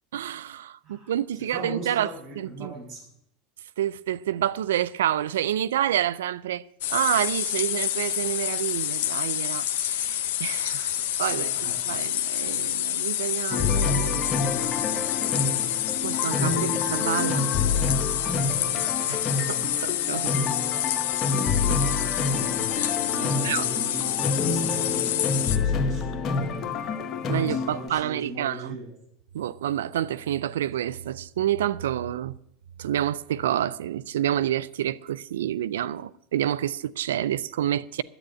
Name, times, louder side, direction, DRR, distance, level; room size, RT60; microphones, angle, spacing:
voice 1, 0.1-2.1 2.4-2.7 3.8-6.6 6.9-10.9 11.2-14.2 16.0-17.6 18.8-19.2 19.5-20.3 21.7-21.8 22.7-22.9 23.4-23.7 27.3-28.8 29.3-32.3 32.8-38.0, right 11 dB, 80° right, 0.5 m, -28 dB
voice 2, 1.5-3.0 11.3-12.0 22.5-22.8 23.1-26.7 27.4-28.9, right 1 dB, 55° right, 7.3 m, -38 dB
sound 1, 6.8-25.6, left 12 dB, 70° left, 0.9 m, -28 dB
sound 2, 13.5-27.9, left 4 dB, 40° left, 1.3 m, -28 dB
10.0 x 8.7 x 9.2 m
hypercardioid pair, 85°, 0 cm